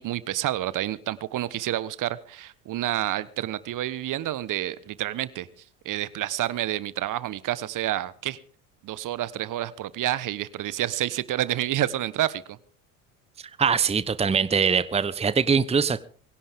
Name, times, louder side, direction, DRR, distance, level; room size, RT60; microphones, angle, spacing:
voice 1, 0.0-5.5 5.8-8.4 8.8-12.6, right 13 dB, 45° right, 1.3 m, -29 dB
voice 2, 13.6-16.0, right 6 dB, 15° right, 0.9 m, -22 dB
23.0 x 17.0 x 3.7 m
hypercardioid pair, 65°, 43 cm